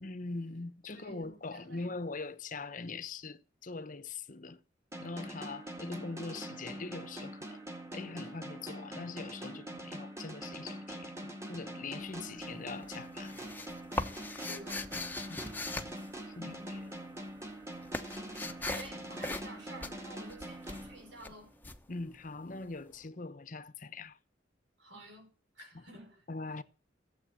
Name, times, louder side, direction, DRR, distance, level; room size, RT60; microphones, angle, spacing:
voice 1, 0.0-4.6 5.0-11.1 11.5-13.4 15.3-15.5 16.4-16.5 21.9-24.2 25.6-25.8 26.3-26.6, left 3 dB, 45° left, 0.9 m, -42 dB
voice 2, 0.9-1.9 14.5-14.9 16.3-16.9 18.7-21.5 24.8-25.3 25.5-26.2, right 1 dB, 70° right, 6.3 m, -51 dB
sound 1, 4.9-21.5, right 1 dB, 15° right, 2.1 m, -44 dB
sound 2, 12.0-12.5 12.8-16.9 17.1-22.7, left 2 dB, 10° left, 0.9 m, -40 dB
15.0 x 8.0 x 7.5 m
head